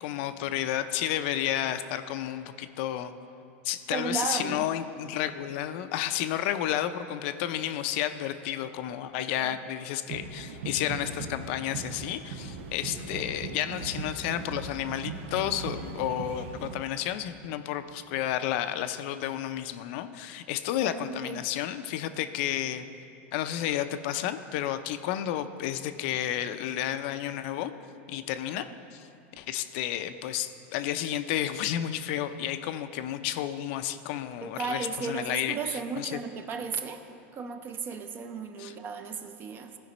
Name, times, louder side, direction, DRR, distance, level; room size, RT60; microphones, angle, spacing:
voice 1, 0.0-3.1 3.6-22.8 23.3-27.7 28.1-28.6 28.9-29.0 29.4-36.2 38.6-38.7, left 11 dB, 55° left, 10 dB, 0.4 m, -31 dB
voice 2, 3.9-4.7 9.2-9.6 20.8-21.4 34.4-37.0 37.3-39.8, right 5 dB, 30° right, 7 dB, 0.6 m, -35 dB
sound 1, 10.1-16.8, right 4 dB, 70° right, 0.8 m, -39 dB
15.5 x 5.1 x 4.0 m, 2.6 s
supercardioid pair, 135°, 7 cm